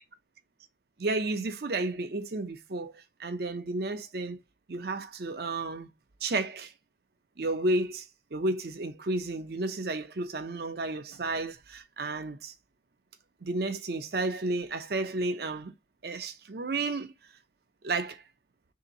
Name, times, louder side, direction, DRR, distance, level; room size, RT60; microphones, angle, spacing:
voice 1, 1.0-4.4 4.7-5.9 6.2-6.7 7.4-12.5 13.4-15.7 16.0-17.1 17.8-18.2, right 2 dB, 55° right, 0.6 m, -32 dB
3.3 x 2.9 x 3.8 m
head